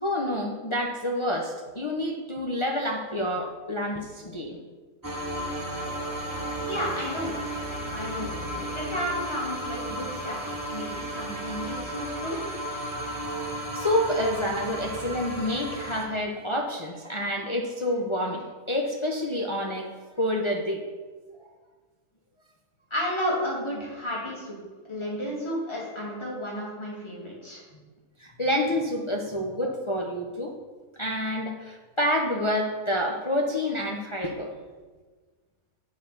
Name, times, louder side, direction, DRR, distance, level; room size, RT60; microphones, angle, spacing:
voice 1, 0.0-4.6 13.7-19.9 20.2-20.8 28.2-30.5 31.0-34.5, left 1 dB, 40° left, 0 dB, 0.4 m, -28 dB
sound 1, 5.0-16.1, right 1 dB, 20° right, 0.6 m, -34 dB
voice 2, 6.7-7.4 7.8-10.4 10.7-12.4 22.9-24.6 24.8-27.6, equal, 15° left, -5 dB, 2.3 m, -32 dB
8.8 x 4.1 x 6.9 m, 1.4 s
omnidirectional pair, 1.7 m